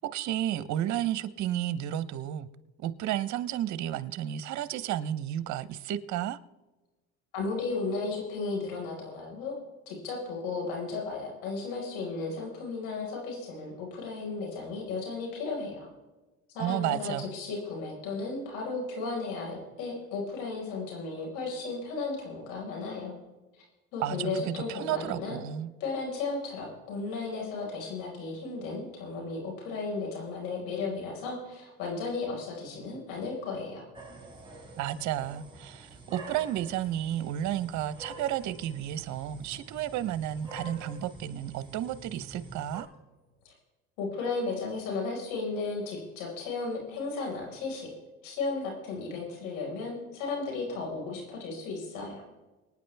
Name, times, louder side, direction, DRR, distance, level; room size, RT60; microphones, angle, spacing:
voice 1, 0.0-2.5 2.8-6.4 16.6-17.3 24.0-25.7 34.8-42.9, right 11 dB, 65° right, 0.9 m, -32 dB
voice 2, 7.3-9.6 9.9-15.9 16.5-23.1 23.9-25.4 25.8-33.8 43.4-43.5 44.0-47.9 48.2-52.2, left 3 dB, 85° left, 5.0 m, -34 dB
sound 1, 33.9-42.8, right 2 dB, 15° right, 3.6 m, -47 dB
24.0 x 9.6 x 3.4 m
supercardioid pair, 95°, 31 cm